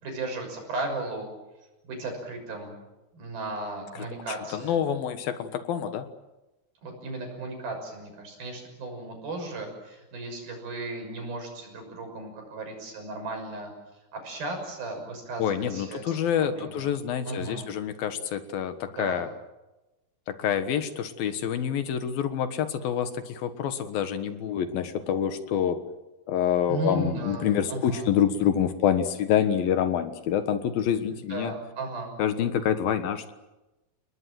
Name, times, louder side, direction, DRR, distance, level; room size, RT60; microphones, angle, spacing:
voice 1, 0.0-1.3 1.8-2.8 3.1-4.8 6.8-13.7 14.1-16.8 17.2-17.7 19.0-19.2 26.7-28.1 31.1-32.1, right 2 dB, 70° right, 3 dB, 8.1 m, -35 dB
voice 2, 4.5-6.1 15.4-19.3 20.3-25.8 26.3-31.5 32.2-33.3, left 9 dB, 70° left, 10 dB, 3.1 m, -27 dB
30.0 x 20.0 x 7.7 m, 1.0 s
omnidirectional pair, 4.4 m